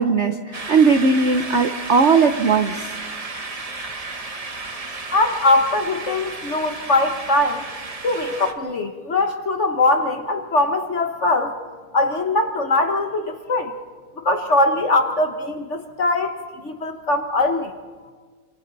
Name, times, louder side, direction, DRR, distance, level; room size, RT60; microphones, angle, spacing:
voice 1, 0.0-2.9, right 4 dB, 70° right, 7 dB, 0.6 m, -18 dB
sound 1, 0.5-8.5, right 3 dB, 25° right, 0.8 m, -33 dB
voice 2, 5.1-7.6 8.0-11.5 11.9-13.7 14.2-16.4 16.6-17.7, left 2 dB, 45° left, 5 dB, 1.1 m, -21 dB
28.5 x 27.0 x 4.0 m, 1.5 s
omnidirectional pair, 2.3 m